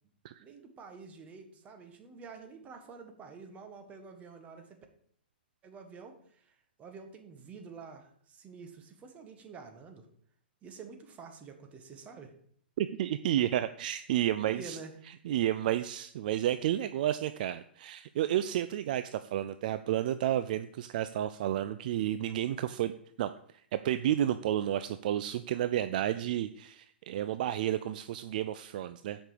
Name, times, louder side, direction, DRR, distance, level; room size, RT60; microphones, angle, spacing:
voice 1, 0.4-4.8 5.6-10.1 10.6-12.3 14.4-14.9, right 5 dB, 25° right, 5 dB, 1.6 m, -48 dB
voice 2, 12.8-14.8 15.2-22.9 23.2-23.3 23.7-29.2, right 12 dB, 55° right, 12 dB, 0.4 m, -31 dB
7.3 x 5.4 x 6.8 m, 0.62 s
figure-of-eight pair, 110°, 6 cm